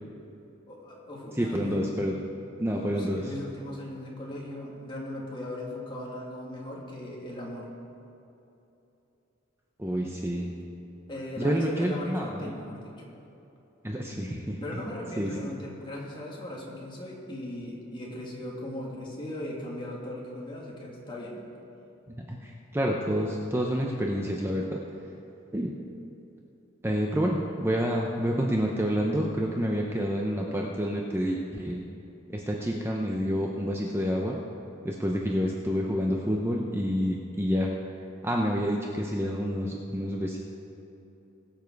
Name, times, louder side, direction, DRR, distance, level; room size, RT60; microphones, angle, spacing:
voice 1, 0.7-1.8 2.7-7.7 11.1-12.9 14.6-21.4, left 1 dB, 25° left, -4 dB, 2.3 m, -38 dB
voice 2, 1.4-2.2 2.6-3.3 9.8-10.5 11.4-12.5 13.8-14.8 15.2-15.3 22.2-24.8 25.5-25.7 26.8-31.8 32.3-34.4 34.8-37.7 38.2-40.4, equal, 10° right, 0 dB, 0.7 m, -28 dB
21.5 x 7.3 x 4.7 m, 2.9 s
head